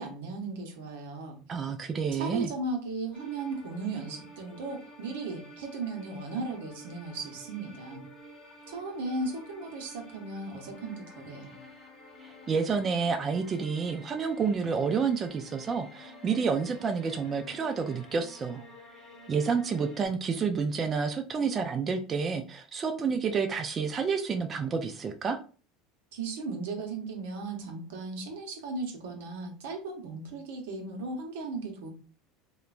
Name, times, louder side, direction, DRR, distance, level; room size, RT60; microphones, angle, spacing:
voice 1, 0.0-1.4 2.1-8.1 8.7-11.5 26.1-31.9, right 3 dB, 80° right, 3 dB, 0.8 m, -36 dB
voice 2, 1.5-2.5 12.2-18.6 19.3-25.4, right 5 dB, 30° right, 5 dB, 0.3 m, -29 dB
sound 1, 3.1-20.1, left 1 dB, 35° left, 0.9 m, -50 dB
2.9 x 2.1 x 2.4 m, 0.38 s
supercardioid pair, 100°, 0 cm